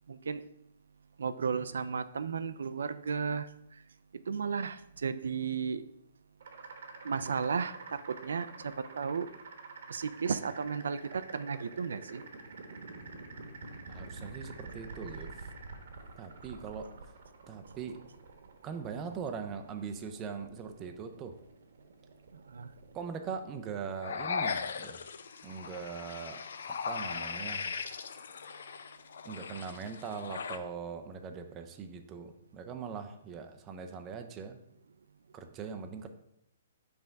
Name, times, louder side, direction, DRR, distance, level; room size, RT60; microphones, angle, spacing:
voice 1, 0.1-0.4 1.2-3.5 4.3-5.8 7.0-9.3 9.9-12.2 22.5-22.7, right 6 dB, 85° right, 12 dB, 0.4 m, -34 dB
sound 1, 6.4-25.2, right 3 dB, 60° right, 1.0 m, -48 dB
voice 2, 13.9-15.5 16.2-17.1 17.5-18.0 18.6-21.4 22.9-25.0 25.4-26.4 26.7-27.7 29.2-34.6 35.3-36.1, right 6 dB, 15° right, 6 dB, 0.4 m, -41 dB
sound 2, 24.0-30.6, left 6 dB, 65° left, 0.5 m, -38 dB
5.6 x 3.5 x 5.1 m, 0.77 s
hypercardioid pair, 170°, 0 cm